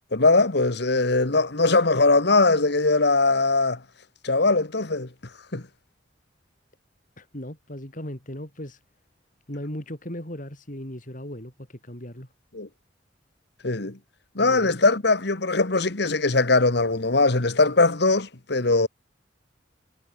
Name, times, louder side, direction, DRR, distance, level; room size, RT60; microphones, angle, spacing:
voice 1, 0.1-3.8 4.2-5.1 5.5-5.6 12.5-12.7 13.6-14.0 14.3-18.9, left 3 dB, 65° left, 1.7 m, -21 dB
voice 2, 7.2-8.8 9.5-12.3 14.4-14.7, left 1 dB, 45° left, 5.8 m, -37 dB
head